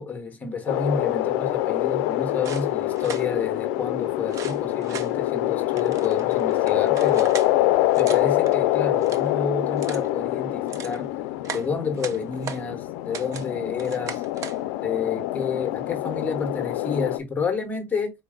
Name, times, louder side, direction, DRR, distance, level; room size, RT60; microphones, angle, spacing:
voice 1, 0.0-7.4 8.0-11.1 11.5-14.2 14.8-18.1, left 5 dB, 15° left, 1.1 m, -30 dB
sound 1, 0.7-17.2, left 15 dB, 80° left, 0.4 m, -25 dB
sound 2, 2.4-3.3 4.3-5.1 5.8-7.5 7.9-8.6 8.9-9.3 9.8-10.1 10.5-11.0 11.4-12.6 13.1-13.5 13.8-14.6, right 7 dB, 35° right, 0.5 m, -38 dB
4.1 x 2.2 x 3.6 m
cardioid pair, 145°, 9 cm